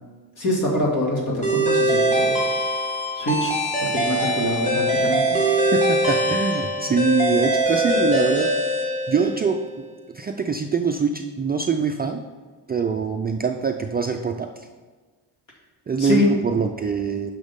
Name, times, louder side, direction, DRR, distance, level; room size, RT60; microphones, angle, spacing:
voice 1, 0.4-2.3 3.1-3.5 3.8-5.4 16.0-16.3, left 1 dB, 50° left, -2 dB, 2.4 m, -24 dB
sound 1, 1.4-9.6, right 1 dB, 15° left, 1.8 m, -22 dB
voice 2, 5.7-9.6 10.1-12.2 12.7-14.5 15.9-17.3, right 5 dB, 25° right, 3 dB, 0.3 m, -24 dB
10.0 x 6.1 x 3.6 m, 1.4 s
wide cardioid pair, 160°, 41 cm